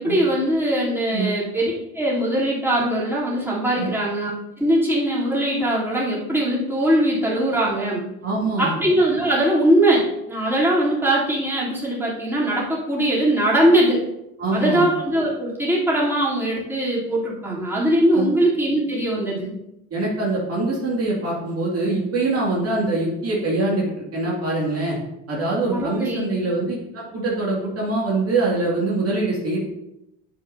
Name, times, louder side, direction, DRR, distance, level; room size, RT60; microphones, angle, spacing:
voice 1, 0.0-4.3 4.6-8.0 8.6-14.1 14.5-19.5 25.7-26.3, right 1 dB, 5° right, -7 dB, 3.4 m, -21 dB
voice 2, 8.2-8.7 14.4-14.9 18.1-18.3 19.9-25.0 25.3-29.6, right 2 dB, 45° right, -5 dB, 2.5 m, -24 dB
10.5 x 7.4 x 2.8 m, 0.88 s
cardioid pair, 105°, 32 cm